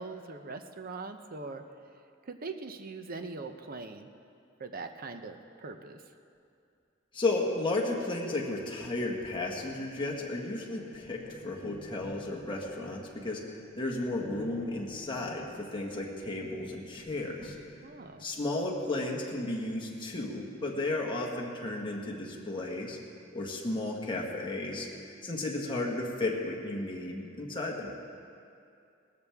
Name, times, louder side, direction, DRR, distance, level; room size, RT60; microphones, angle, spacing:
voice 1, 0.0-1.6 2.2-4.1 4.6-6.0 10.8-10.9 17.8-18.2, right 3 dB, 50° right, 7 dB, 0.7 m, -41 dB
voice 2, 7.1-13.4 13.8-17.6 18.2-23.0 23.3-27.9, left 2 dB, 25° left, -2 dB, 1.7 m, -33 dB
sound 1, 9.2-20.4, equal, 10° right, 1.6 m, -53 dB
18.5 x 13.5 x 3.6 m, 2.5 s
head